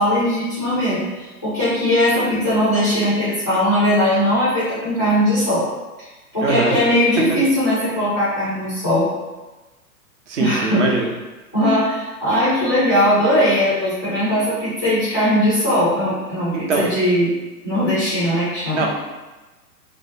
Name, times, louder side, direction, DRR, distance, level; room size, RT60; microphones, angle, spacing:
voice 1, 0.0-5.7 6.3-9.1 10.4-10.9 11.5-17.3 17.6-18.9, equal, 15° left, -13 dB, 0.3 m, -19 dB
voice 2, 6.4-6.8 10.3-11.1 16.5-16.9 18.7-18.9, right 4 dB, 55° right, 0 dB, 0.5 m, -22 dB
2.6 x 2.0 x 2.5 m, 1.1 s
figure-of-eight pair, 110°, 46 cm